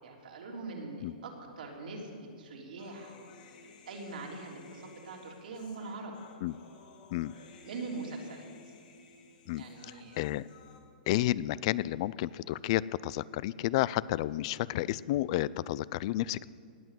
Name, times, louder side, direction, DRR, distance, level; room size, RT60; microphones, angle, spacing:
voice 1, 0.0-2.1 2.4-3.1 3.8-6.1 7.6-8.7 9.6-10.2, right 3 dB, 75° right, 0 dB, 3.4 m, -42 dB
Human voice, 2.8-10.8, left 3 dB, 60° left, 2.9 m, -56 dB
voice 2, 11.1-16.5, left 15 dB, 40° left, 20 dB, 0.4 m, -31 dB
18.5 x 8.3 x 7.6 m, 2.3 s
hypercardioid pair, 155°, 5 cm